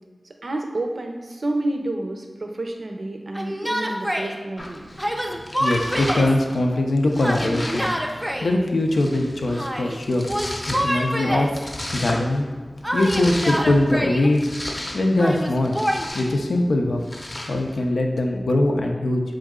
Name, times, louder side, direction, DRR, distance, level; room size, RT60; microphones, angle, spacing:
voice 1, 0.4-4.8, right 2 dB, 70° right, 3 dB, 0.5 m, -29 dB
Yell, 3.3-4.3 5.0-6.4 7.2-8.5 9.5-10.0 10.3-11.6 12.8-14.3 15.2-16.0, equal, 5° right, 0.4 m, -26 dB
Domestic sounds home sounds, 4.6-17.8, left 1 dB, 40° left, 0.6 m, -36 dB
voice 2, 5.3-7.9 8.1-10.3 10.7-12.5 12.9-14.5 14.9-15.8 16.1-17.0 17.5-19.2, left 1 dB, 85° left, 2 dB, 0.4 m, -22 dB
3.7 x 3.1 x 3.6 m, 1.4 s
wide cardioid pair, 55°, 0 cm